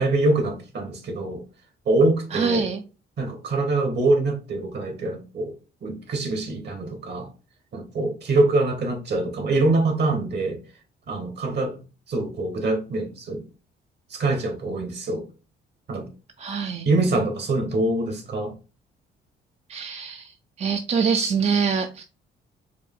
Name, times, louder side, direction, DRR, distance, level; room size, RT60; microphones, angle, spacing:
voice 1, 0.0-1.4 1.8-2.7 3.2-5.5 5.8-7.3 7.7-10.6 11.1-11.7 12.1-13.4 14.1-15.2 15.9-16.1 16.8-18.5, right 2 dB, 60° right, 1.5 m, -24 dB
voice 2, 2.3-2.8 16.4-16.9 19.7-20.3 20.6-22.0, right 6 dB, 35° right, 0.5 m, -24 dB
4.7 x 2.4 x 3.6 m
cardioid pair, 90°, 20 cm